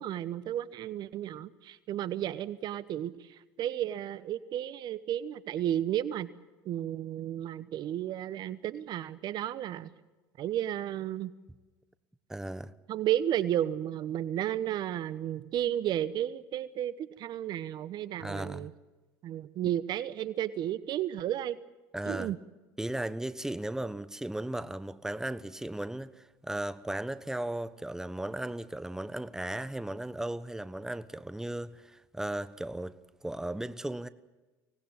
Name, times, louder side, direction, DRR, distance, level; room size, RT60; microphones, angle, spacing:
voice 1, 0.0-6.3 6.6-9.9 10.4-11.3 12.9-18.7 19.2-21.6 22.1-22.4, right 11 dB, 55° right, 1.1 m, -33 dB
voice 2, 12.3-12.7 18.2-18.7 21.9-22.3 22.8-34.1, right 1 dB, 5° right, 1.2 m, -36 dB
24.5 x 19.0 x 9.0 m
hypercardioid pair, 75°, 9 cm